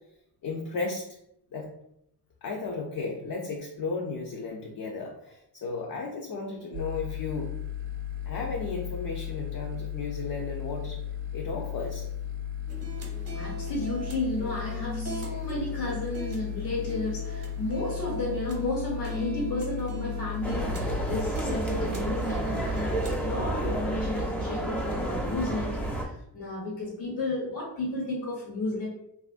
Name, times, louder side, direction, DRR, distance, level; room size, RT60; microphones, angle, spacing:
voice 1, 0.4-1.1 1.5-1.7 2.4-7.5 8.2-11.0 11.3-12.1, left 3 dB, 55° left, 0 dB, 0.6 m, -34 dB
sound 1, 6.7-21.3, left 9 dB, 75° right, 0.6 m, -35 dB
sound 2, 12.7-23.2, right 2 dB, 35° right, 0.8 m, -41 dB
voice 2, 13.3-28.9, left 2 dB, 80° left, -6 dB, 1.3 m, -33 dB
sound 3, 20.4-26.0, right 1 dB, 5° left, 0.6 m, -30 dB
3.0 x 2.5 x 2.4 m, 0.78 s
cardioid pair, 100°, 42 cm